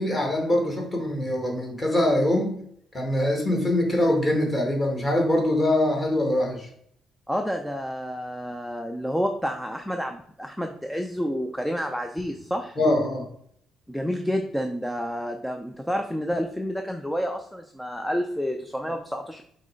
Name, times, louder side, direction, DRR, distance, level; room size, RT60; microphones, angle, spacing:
voice 1, 0.0-2.6 2.9-6.7 12.8-13.3, left 1 dB, 20° left, 0 dB, 1.8 m, -23 dB
voice 2, 7.3-12.8 13.9-19.4, equal, ahead, 4 dB, 0.4 m, -29 dB
6.3 x 3.2 x 5.1 m, 0.66 s
cardioid pair, 145°, 0 cm